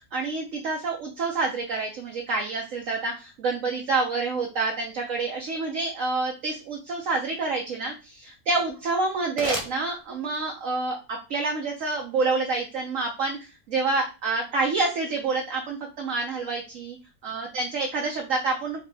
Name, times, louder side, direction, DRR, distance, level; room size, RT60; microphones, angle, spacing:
voice 1, 0.1-17.0 17.2-18.8, right 3 dB, 60° right, 1 dB, 1.0 m, -28 dB
sound 1, 8.6-10.6, right 1 dB, 40° right, 0.4 m, -35 dB
4.4 x 2.9 x 3.3 m, 0.31 s
omnidirectional pair, 1.7 m